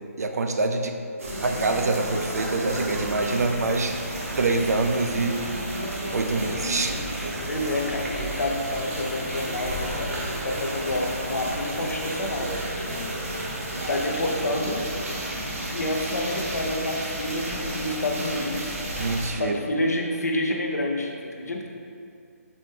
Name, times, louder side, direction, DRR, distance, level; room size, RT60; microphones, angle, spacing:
voice 1, 0.2-0.9 1.4-4.0 4.4-5.4 6.1-6.9 7.3-7.4 19.0-19.6, right 3 dB, 80° right, 5 dB, 0.4 m, -25 dB
sound 1, 1.2-19.3, right 1 dB, 60° right, 0.9 m, -31 dB
voice 2, 7.4-13.2 13.4-14.9 15.7-18.8 19.3-21.7, left 1 dB, 85° left, 1 dB, 0.7 m, -29 dB
4.2 x 3.2 x 3.6 m, 2.4 s
hypercardioid pair, 175°, 8 cm